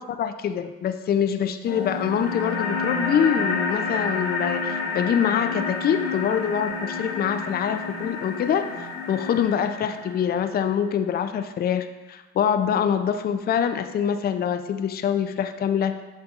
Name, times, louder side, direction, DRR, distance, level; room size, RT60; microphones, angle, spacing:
voice 1, 0.0-16.0, left 8 dB, 30° left, 9 dB, 0.4 m, -25 dB
sound 1, 1.7-10.7, left 4 dB, 75° left, 0.8 m, -29 dB
6.7 x 3.2 x 2.4 m, 1.1 s
hypercardioid pair, 50°, 33 cm